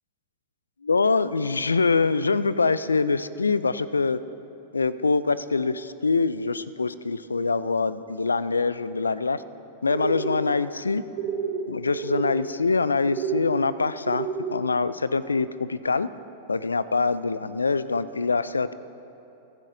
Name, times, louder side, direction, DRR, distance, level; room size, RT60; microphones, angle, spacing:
voice 1, 0.8-4.2 4.7-9.4 9.8-11.0 11.7-16.1 16.5-18.7, left 4 dB, 90° left, 16 dB, 0.4 m, -24 dB
sound 1, 9.9-10.4 11.1-11.6 11.9-12.4 13.1-13.5 14.0-14.6, right 7 dB, 50° right, 1.2 m, -30 dB
23.0 x 11.0 x 2.7 m, 2.9 s
hypercardioid pair, 100°, 0 cm